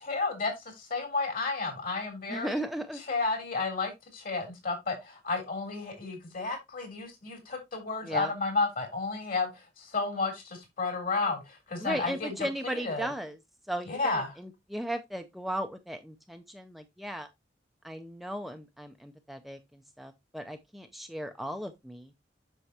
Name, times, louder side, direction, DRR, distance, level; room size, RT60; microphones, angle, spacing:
voice 1, 0.0-2.6 3.1-12.3 12.8-13.1 13.9-14.3, left 3 dB, 55° left, 3.4 m, -32 dB
voice 2, 2.3-3.0 8.0-8.3 11.8-13.4 13.7-17.3 17.8-22.1, right 1 dB, ahead, 0.5 m, -36 dB
8.0 x 6.2 x 2.8 m
head